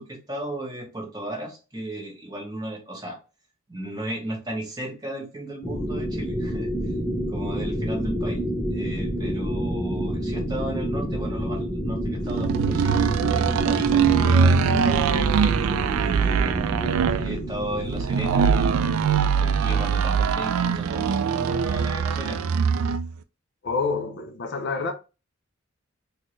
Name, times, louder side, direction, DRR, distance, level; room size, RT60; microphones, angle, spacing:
voice 1, 0.0-3.2 3.7-6.7 7.3-8.4 8.7-15.2 16.0-18.9 19.4-22.4, right 1 dB, 20° right, 1.0 m, -34 dB
sound 1, 5.6-19.0, equal, 10° left, 0.6 m, -29 dB
sound 2, 12.3-23.1, right 6 dB, 90° right, 0.3 m, -22 dB
voice 2, 23.6-24.9, left 4 dB, 55° left, 0.5 m, -27 dB
4.2 x 2.1 x 3.1 m
head